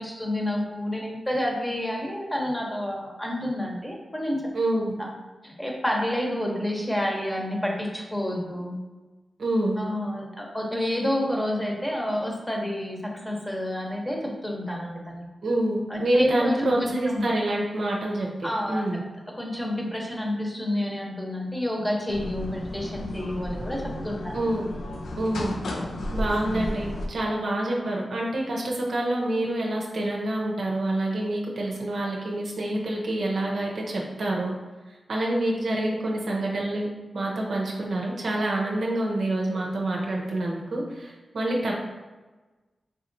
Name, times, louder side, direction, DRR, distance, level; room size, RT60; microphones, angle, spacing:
voice 1, 0.0-4.4 4.7-5.1 5.4-8.8 9.8-15.2 15.9-17.2 18.4-18.9 19.3-24.4 25.7-26.0, left 1 dB, 15° left, -1 dB, 0.9 m, -29 dB
voice 2, 4.5-4.9 9.4-9.7 15.4-19.0 24.3-24.7 25.2-25.5 26.1-34.5 35.1-36.9 37.1-41.7, right 1 dB, 75° right, -1 dB, 0.6 m, -27 dB
sound 1, 22.1-27.1, left 1 dB, 85° left, 0.4 m, -33 dB
3.8 x 2.9 x 2.6 m, 1.2 s
cardioid pair, 55°, 0 cm